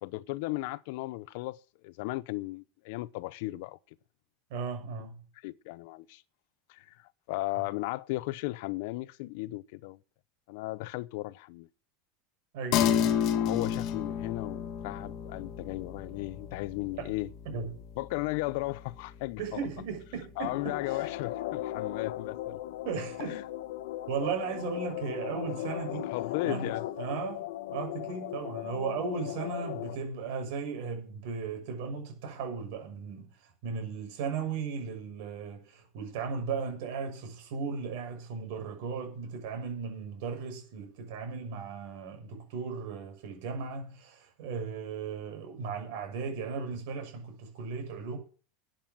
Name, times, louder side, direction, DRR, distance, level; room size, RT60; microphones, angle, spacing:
voice 1, 0.0-3.8 5.4-6.2 6.7-10.0 10.5-11.7 13.4-17.3 18.0-19.6 20.4-22.6 23.3-23.4 26.1-26.8, left 20 dB, 65° left, 0.7 m, -36 dB
voice 2, 4.5-5.2 12.5-12.9 17.0-17.1 17.4-17.7 19.4-21.1 22.8-23.4 24.1-26.1 26.4-26.7 27.0-48.2, right 5 dB, 65° right, 6.5 m, -36 dB
sound 1, 12.7-22.4, left 9 dB, 45° left, 1.6 m, -33 dB
sound 2, 20.4-30.0, left 14 dB, 90° left, 1.0 m, -37 dB
12.5 x 8.9 x 7.5 m
supercardioid pair, 150°, 0 cm